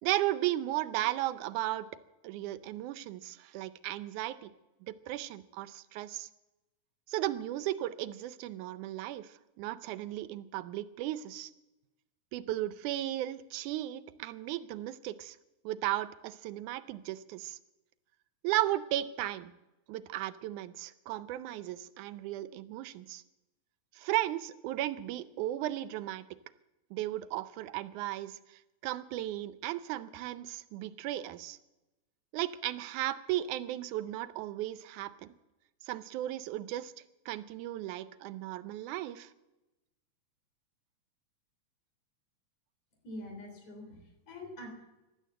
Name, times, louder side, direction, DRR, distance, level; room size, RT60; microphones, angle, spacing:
voice 1, 0.0-1.9 2.2-4.5 4.9-6.3 7.1-11.5 12.3-15.4 15.6-17.6 18.4-19.5 19.9-23.2 24.0-26.2 26.9-31.6 32.3-35.3 35.8-36.9 37.3-39.3, right 14 dB, 85° right, 14 dB, 2.2 m, -35 dB
voice 2, 43.0-44.7, left 1 dB, 65° left, 5 dB, 4.7 m, -45 dB
16.0 x 11.5 x 7.7 m, 1.0 s
omnidirectional pair, 3.5 m